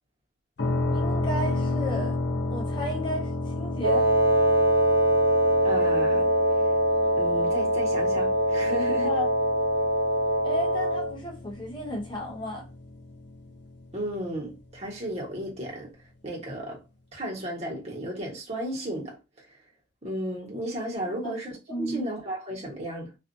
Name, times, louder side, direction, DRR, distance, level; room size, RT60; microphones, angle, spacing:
sound 1, 0.6-14.3, left 2 dB, 65° left, 0.6 m, -33 dB
voice 1, 0.9-2.2 2.5-3.3 3.6-4.1 9.0-9.3 10.4-12.7 21.2-21.3 21.7-22.0, equal, 25° left, 0.6 m, -33 dB
Wind instrument woodwind instrument, 3.8-11.1, right 1 dB, 80° right, 0.7 m, -23 dB
voice 2, 5.6-6.3 7.2-9.2 13.9-15.9 16.2-16.8 17.1-19.6 20.0-23.1, right 1 dB, 35° right, 1.1 m, -34 dB
2.5 x 2.4 x 2.5 m
head